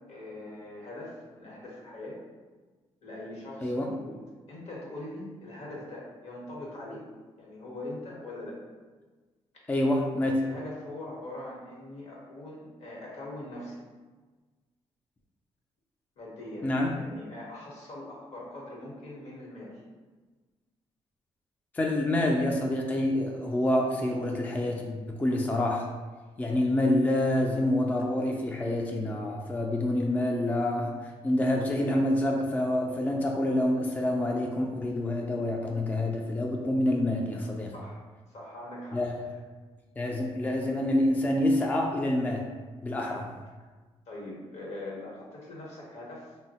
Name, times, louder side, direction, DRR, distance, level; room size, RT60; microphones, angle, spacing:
voice 1, 0.1-2.2 3.0-4.2 4.5-7.0 7.4-8.6 10.4-13.8 16.2-19.8 37.7-38.0 38.3-39.0 44.1-46.3, left 1 dB, 70° left, -3 dB, 0.9 m, -42 dB
voice 2, 9.7-10.4 16.6-16.9 21.7-25.9 26.4-37.7 38.9-39.1 40.0-42.5 42.8-43.3, left 1 dB, 15° left, 0 dB, 0.3 m, -27 dB
3.2 x 2.1 x 2.7 m, 1.3 s
cardioid pair, 85°, 11 cm